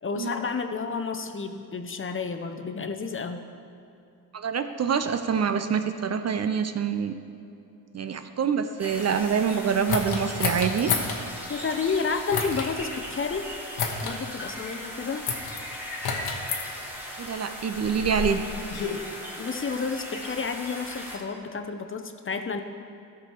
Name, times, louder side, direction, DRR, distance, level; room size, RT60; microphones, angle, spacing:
voice 1, 0.0-3.4 11.5-13.5 14.0-15.3 19.4-22.6, left 5 dB, 35° left, 6 dB, 0.7 m, -30 dB
voice 2, 4.3-7.1 7.9-10.9 17.2-18.4, right 7 dB, 45° right, 8 dB, 0.6 m, -26 dB
sound 1, 8.8-21.2, equal, 5° right, 1.9 m, -38 dB
sound 2, 9.9-11.2 12.3-12.7 13.8-14.2 15.3-15.6 16.0-16.6 17.5-19.0, left 5 dB, 90° left, 1.1 m, -29 dB
13.0 x 6.2 x 4.6 m, 2.7 s
cardioid pair, 85°, 37 cm